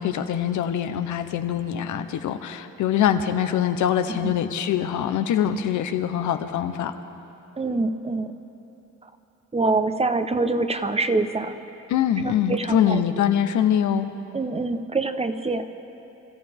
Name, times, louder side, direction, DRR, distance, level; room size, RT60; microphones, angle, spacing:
voice 1, 0.0-6.9 11.9-14.1, left 9 dB, 75° left, 9 dB, 1.0 m, -23 dB
voice 2, 7.6-8.3 9.0-9.1 9.5-11.6 12.2-13.0 14.3-15.7, right 3 dB, 20° right, 10 dB, 0.8 m, -25 dB
27.0 x 14.5 x 3.6 m, 2.9 s
cardioid pair, 90°, 30 cm